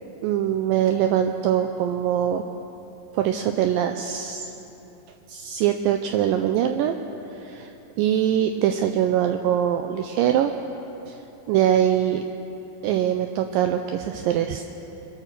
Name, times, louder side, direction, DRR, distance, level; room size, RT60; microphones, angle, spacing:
voice 1, 0.2-2.4 3.1-4.5 5.3-7.0 7.4-7.7 8.0-10.5 11.1-11.2 11.5-12.2 12.8-14.7, right 10 dB, 80° right, 6 dB, 2.0 m, -23 dB
24.5 x 8.5 x 6.7 m, 3.0 s
omnidirectional pair, 4.4 m